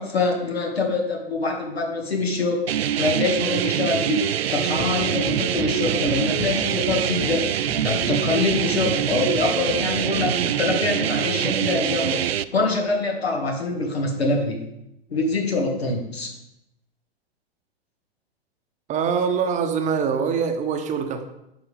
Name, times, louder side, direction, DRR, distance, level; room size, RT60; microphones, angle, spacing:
voice 1, 0.0-2.6 3.0-4.2 4.5-14.6 15.1-16.3, left 3 dB, 85° left, 1 dB, 2.0 m, -24 dB
sound 1, 2.7-12.4, right 10 dB, 75° right, 0.4 m, -24 dB
sound 2, 4.7-10.3, right 2 dB, 30° left, 2.1 m, -34 dB
voice 2, 18.9-21.2, right 6 dB, 25° right, 6 dB, 0.8 m, -24 dB
10.0 x 5.9 x 3.4 m, 0.85 s
figure-of-eight pair, 105°, 30 cm